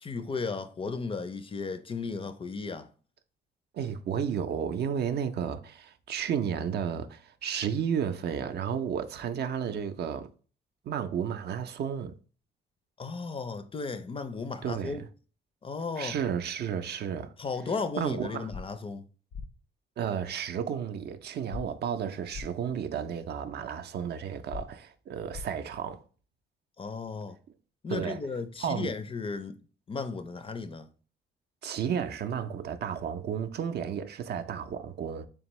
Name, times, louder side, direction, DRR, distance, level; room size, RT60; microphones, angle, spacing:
voice 1, 0.0-2.9 13.0-15.0 15.6-16.2 17.4-19.0 26.8-27.4 27.8-29.6 29.9-30.9, left 4 dB, 25° left, 0.4 m, -35 dB
voice 2, 3.7-10.3 10.8-12.1 14.6-15.1 16.0-17.3 18.0-18.5 20.0-26.0 27.9-28.2 28.6-28.9 31.6-35.3, right 8 dB, 55° right, 0.4 m, -32 dB
sound 1, 18.5-18.6 19.3-19.5 21.5-21.6 22.3-22.5 24.5-24.6 25.3-25.5, left 4 dB, 75° left, 0.7 m, -38 dB
3.5 x 3.4 x 3.0 m
cardioid pair, 90°, 20 cm